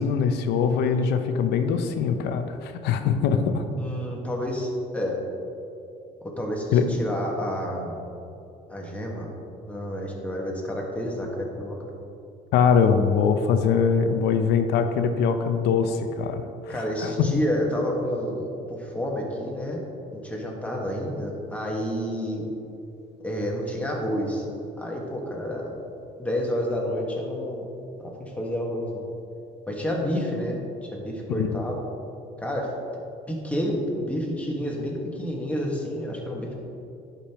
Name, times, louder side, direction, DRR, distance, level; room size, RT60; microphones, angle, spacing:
voice 1, 0.0-3.7 6.7-6.8 12.5-17.3 31.3-31.6, left 6 dB, 85° left, 7 dB, 0.6 m, -22 dB
voice 2, 3.8-5.2 6.2-8.0 8.7-9.3 9.7-11.8 16.7-19.8 20.1-22.4 23.2-24.4 24.8-25.7 26.2-27.7 28.0-29.1 29.7-30.6 30.9-31.8 32.4-32.7 33.3-36.5, equal, 10° left, -2 dB, 1.5 m, -29 dB
11.5 x 5.3 x 3.0 m, 2.7 s
cardioid pair, 110°, 17 cm